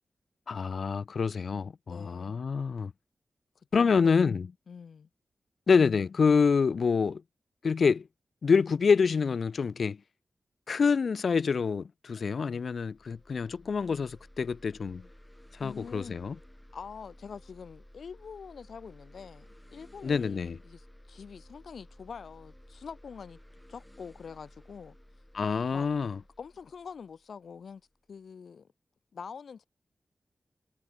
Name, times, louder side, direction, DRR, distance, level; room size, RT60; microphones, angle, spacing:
voice 1, 0.5-2.9 3.7-4.5 5.7-7.2 7.6-8.1 8.4-10.0 10.7-15.0 15.6-16.4 20.0-20.6 25.3-26.2, left 5 dB, 65° left, 0.3 m, -26 dB
voice 2, 1.9-2.4 3.6-4.3 4.7-5.1 15.6-16.3 16.7-23.4 23.7-25.0 25.7-25.9 26.4-27.8 28.1-28.7 29.1-29.6, left 6 dB, 80° left, 1.9 m, -45 dB
sound 1, 12.5-28.0, left 1 dB, 5° left, 2.8 m, -55 dB
wide cardioid pair, 145°, 0 cm